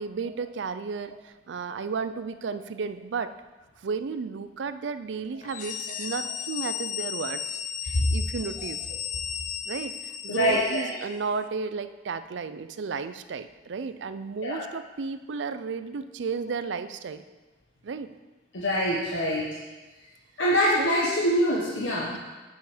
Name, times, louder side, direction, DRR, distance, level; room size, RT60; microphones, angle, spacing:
voice 1, 0.0-3.3 3.8-7.4 7.8-8.8 9.7-17.2 17.8-18.1 20.8-20.9, right 5 dB, 70° right, 12 dB, 0.4 m, -33 dB
sound 1, 5.4-11.1, left 8 dB, 45° left, 0.5 m, -35 dB
voice 2, 10.3-10.9 14.4-14.6 18.5-19.5 20.4-22.1, equal, 90° left, -4 dB, 1.1 m, -24 dB
8.7 x 5.7 x 4.9 m, 1.2 s
head